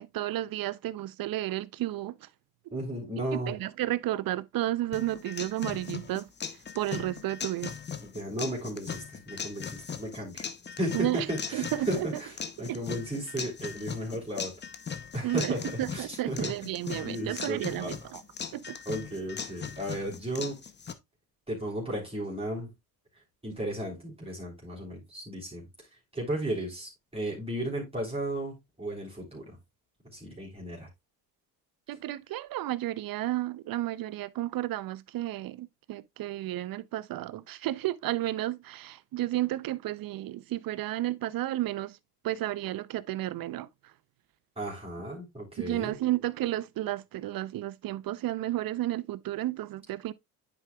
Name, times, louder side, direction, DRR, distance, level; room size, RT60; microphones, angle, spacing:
voice 1, 0.0-2.3 3.3-7.8 10.9-12.1 12.7-12.8 15.2-18.2 18.5-18.8 31.9-42.0 42.2-43.9 45.6-50.1, right 15 dB, 45° right, 0.6 m, -32 dB
voice 2, 2.7-3.5 8.1-10.5 10.8-12.3 12.6-14.5 15.1-15.6 15.9-16.5 17.0-17.9 18.8-20.6 21.5-22.7 23.4-25.7 26.1-29.6 30.1-30.9 44.6-45.9, right 1 dB, 10° right, 3.2 m, -34 dB
sound 1, 4.9-20.9, left 6 dB, 20° left, 0.7 m, -39 dB
9.7 x 4.8 x 2.3 m
supercardioid pair, 90°, 48 cm